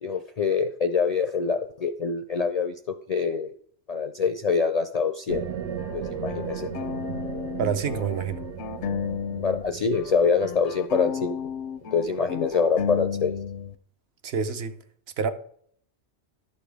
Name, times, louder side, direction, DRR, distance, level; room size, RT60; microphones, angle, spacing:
voice 1, 0.0-3.5 3.9-5.4 5.9-6.7 9.4-11.3 11.9-13.3, left 5 dB, 55° left, 0.4 m, -25 dB
sound 1, 5.3-12.6, right 7 dB, 90° right, 1.1 m, -36 dB
sound 2, 5.8-9.7 9.9-13.8, left 7 dB, 85° left, 0.9 m, -33 dB
voice 2, 7.6-8.4 14.2-14.8 15.2-15.3, right 6 dB, 65° right, 0.9 m, -27 dB
11.5 x 6.8 x 3.4 m
omnidirectional pair, 1.2 m